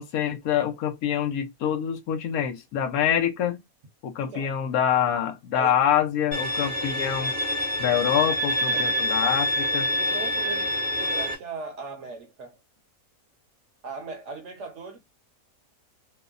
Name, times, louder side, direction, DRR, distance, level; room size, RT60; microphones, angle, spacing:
voice 1, 0.0-3.6 4.0-7.3 7.8-9.9, left 9 dB, 80° left, 1.0 m, -25 dB
voice 2, 4.2-4.5 5.5-5.8 8.7-8.9 9.7-12.6 13.8-15.0, right 4 dB, 60° right, 0.9 m, -38 dB
Bowed string instrument, 6.3-11.3, equal, 30° left, 1.0 m, -26 dB
3.0 x 2.1 x 2.4 m
omnidirectional pair, 1.6 m